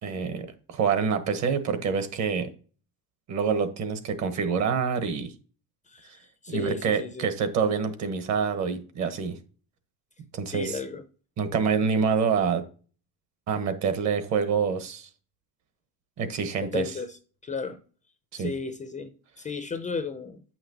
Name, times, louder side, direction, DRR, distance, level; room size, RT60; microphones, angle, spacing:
voice 1, 0.0-2.5 3.3-5.3 6.5-9.4 10.3-10.8 11.4-12.6 13.5-15.1 16.2-16.9 18.3-18.5, right 6 dB, 45° right, 1.1 m, -26 dB
voice 2, 5.9-7.3 10.5-11.0 16.6-17.2 17.4-17.8 18.3-20.4, left 4 dB, 20° left, 0.5 m, -34 dB
8.3 x 5.8 x 2.8 m
cardioid pair, 145°, 38 cm